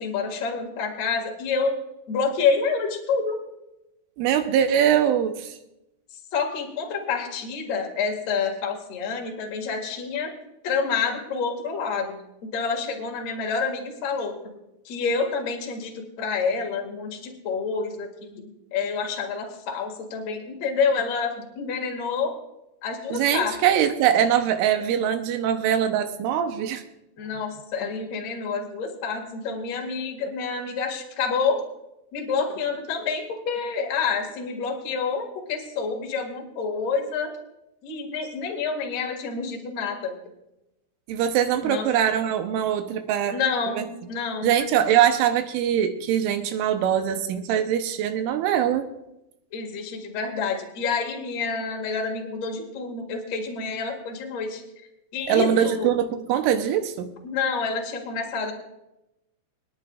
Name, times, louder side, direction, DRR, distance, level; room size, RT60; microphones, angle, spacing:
voice 1, 0.0-1.7 2.1-3.4 6.1-10.3 10.6-12.2 12.5-14.4 14.8-22.3 22.8-23.6 27.2-31.6 32.1-37.3 37.8-40.2 41.6-41.9 43.2-44.5 49.5-54.6 55.1-55.9 57.2-58.5, left 5 dB, 50° left, 0 dB, 2.2 m, -28 dB
voice 2, 4.2-5.6 23.1-26.8 41.1-43.4 43.7-43.8 44.4-48.9 55.3-57.1, right 9 dB, 85° right, 7 dB, 3.2 m, -22 dB
27.5 x 10.0 x 2.4 m, 0.89 s
omnidirectional pair, 5.8 m